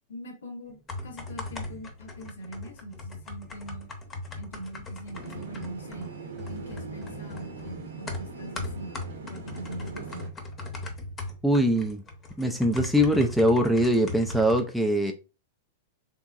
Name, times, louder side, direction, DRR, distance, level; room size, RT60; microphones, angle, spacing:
voice 1, 0.1-3.9 4.4-6.1 6.5-9.0 9.3-10.3, right 1 dB, 70° left, 1.1 m, -42 dB
sound 1, 0.7-14.6, left 2 dB, 25° left, 0.9 m, -39 dB
sound 2, 5.1-10.3, right 4 dB, 75° right, 0.8 m, -41 dB
voice 2, 11.4-12.0 12.4-15.1, equal, ahead, 0.4 m, -22 dB
3.4 x 3.0 x 2.4 m
hypercardioid pair, 100°, 0 cm